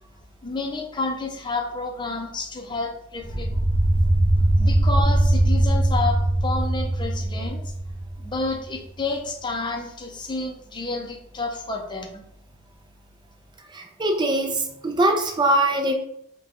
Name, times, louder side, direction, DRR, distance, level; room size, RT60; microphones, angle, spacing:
voice 1, 0.4-3.6 4.6-7.7 8.2-12.2, left 3 dB, 25° left, 2 dB, 0.6 m, -30 dB
sound 1, 3.2-8.5, right 1 dB, 55° right, 0.9 m, -21 dB
voice 2, 13.7-15.9, right 1 dB, 25° right, 4 dB, 0.5 m, -22 dB
5.2 x 2.3 x 2.9 m, 0.73 s
head